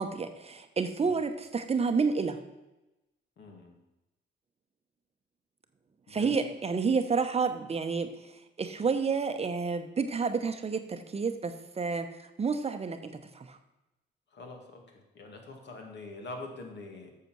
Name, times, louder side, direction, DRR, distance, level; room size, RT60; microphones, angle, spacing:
voice 1, 0.0-2.4 6.1-8.1 8.6-13.6, right 5 dB, 30° right, 7 dB, 0.8 m, -30 dB
voice 2, 3.4-3.7 6.1-6.5 14.3-17.1, left 2 dB, 60° left, 2 dB, 2.1 m, -45 dB
8.2 x 6.8 x 6.1 m, 0.98 s
cardioid pair, 90°, 20 cm